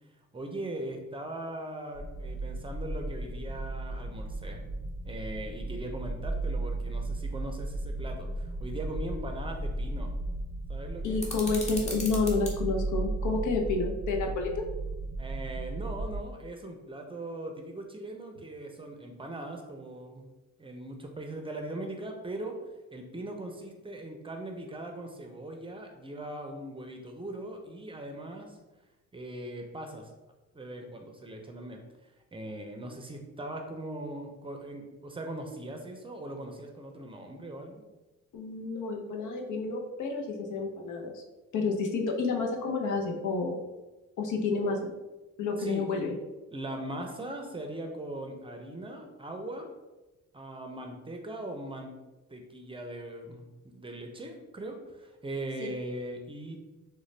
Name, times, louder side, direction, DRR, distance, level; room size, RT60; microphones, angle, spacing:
voice 1, 0.3-4.6 5.0-10.1 10.7-11.2 15.2-20.3 20.6-22.6 22.9-28.6 29.1-30.1 30.5-31.8 32.3-37.8 45.6-45.9 46.5-49.7 50.3-51.9 52.3-56.6, right 1 dB, 15° right, 3 dB, 0.5 m, -40 dB
sound 1, 1.9-16.2, right 2 dB, 50° left, 0.9 m, -35 dB
voice 2, 11.0-14.6 38.3-41.2 41.5-43.6 44.2-44.9 45.4-46.1 55.6-55.7, left 3 dB, 75° left, 2 dB, 0.7 m, -30 dB
sound 2, 11.2-12.5, left 1 dB, 20° left, 0.8 m, -38 dB
3.8 x 2.2 x 3.2 m, 1.1 s
cardioid pair, 90°, 30 cm